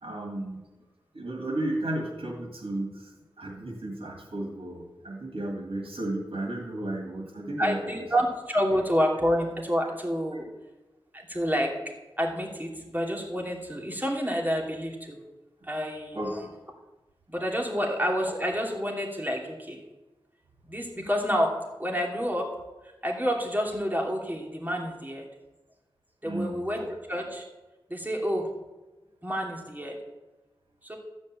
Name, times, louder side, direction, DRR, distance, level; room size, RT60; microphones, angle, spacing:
voice 1, 0.0-0.7 1.1-3.1 3.4-8.1 16.1-16.3 17.7-17.8 26.2-26.7, right 1 dB, 90° right, 0 dB, 2.0 m, -33 dB
voice 2, 7.6-10.5 11.1-11.7 12.2-15.2 15.6-16.5 17.3-19.8 20.7-21.5 21.8-22.5 23.0-25.3 26.2-27.4 27.9-28.5 29.2-30.0 30.8-31.0, equal, 20° right, 0 dB, 2.7 m, -28 dB
13.5 x 5.3 x 8.8 m, 1.1 s
wide cardioid pair, 55°, 9 cm